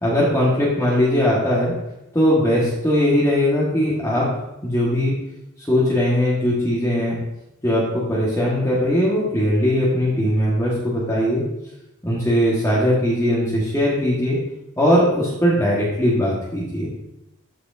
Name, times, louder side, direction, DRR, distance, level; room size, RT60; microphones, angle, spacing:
voice 1, 0.0-1.7 2.1-4.3 4.6-5.1 5.7-7.2 7.6-11.4 12.0-14.4 14.8-16.9, equal, 15° left, -7 dB, 1.5 m, -19 dB
13.5 x 4.8 x 2.7 m, 0.90 s
head